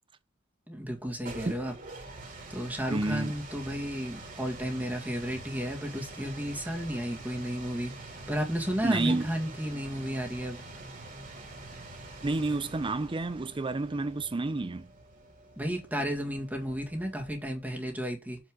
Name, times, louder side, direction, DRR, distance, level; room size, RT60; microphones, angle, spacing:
voice 1, 0.7-1.7 2.5-10.6 15.6-18.4, equal, 10° right, 2.1 m, -33 dB
sound 1, 1.0-17.7, right 2 dB, 40° right, 2.9 m, -46 dB
voice 2, 2.9-3.3 8.8-9.3 12.2-14.9, right 2 dB, 25° right, 0.5 m, -30 dB
7.2 x 6.1 x 3.7 m
head